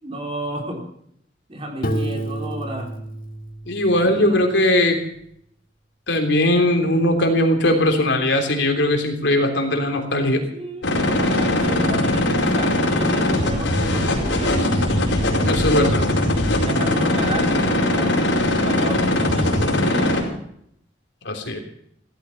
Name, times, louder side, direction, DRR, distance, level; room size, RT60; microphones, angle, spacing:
voice 1, 0.0-0.9 1.5-2.9 3.9-4.4 10.5-15.0 16.6-20.1, right 1 dB, 30° right, 2 dB, 3.4 m, -32 dB
Piano, 1.8-4.6, right 1 dB, 50° left, 2.2 m, -29 dB
voice 2, 3.7-5.0 6.1-10.4 15.4-16.1 21.2-21.6, left 1 dB, 70° left, 4 dB, 3.4 m, -19 dB
sound 1, 10.8-20.2, left 1 dB, 85° left, 4.9 m, -20 dB
16.5 x 14.0 x 5.8 m, 0.71 s
head